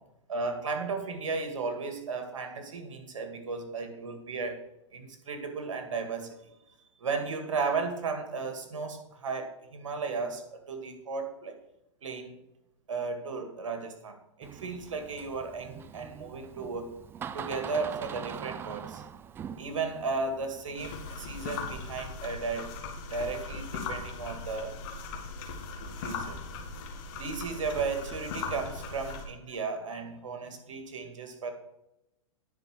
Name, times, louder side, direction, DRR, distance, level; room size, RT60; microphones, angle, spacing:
voice 1, 0.3-4.6 4.9-6.4 7.0-11.6 12.0-12.4 12.9-16.9 17.3-19.0 19.6-22.7 23.1-24.8 26.0-26.4 27.1-31.5, right 4 dB, 90° right, 5 dB, 2.1 m, -35 dB
Door, 14.4-22.1, right 8 dB, 15° right, 0.3 m, -44 dB
sound 1, 20.8-29.3, left 4 dB, 45° left, 1.9 m, -39 dB
9.9 x 5.8 x 6.4 m, 0.88 s
hypercardioid pair, 135°, 16 cm